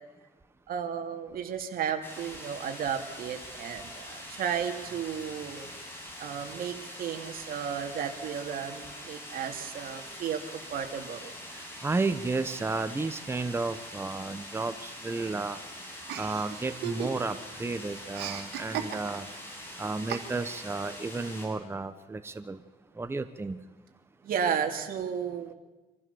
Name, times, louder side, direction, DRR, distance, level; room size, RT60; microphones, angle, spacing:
voice 1, 0.7-5.7 6.2-10.4 10.7-11.3 23.4-23.5 24.2-25.5, right 7 dB, 60° right, 4 dB, 2.4 m, -33 dB
sound 1, 2.0-21.5, left 1 dB, 15° left, 6.9 m, -44 dB
voice 2, 11.5-15.6 16.2-19.3 19.8-22.6 23.0-23.6, right 3 dB, 15° right, 10 dB, 1.0 m, -32 dB
Chuckle chortle, 16.1-17.5 17.7-19.4 20.1-20.7, right 8 dB, 80° right, 2.5 m, -36 dB
25.0 x 15.0 x 7.0 m, 1.2 s
cardioid pair, 110°, 17 cm